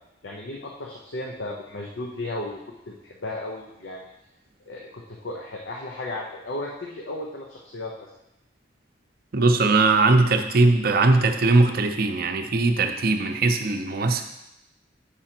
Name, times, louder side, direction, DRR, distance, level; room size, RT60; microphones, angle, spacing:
voice 1, 0.2-2.6 2.9-4.1 4.7-8.1, left 2 dB, 75° left, 0 dB, 0.7 m, -35 dB
voice 2, 9.3-14.2, right 3 dB, 55° right, 6 dB, 0.6 m, -20 dB
7.3 x 5.0 x 4.4 m, 0.89 s
head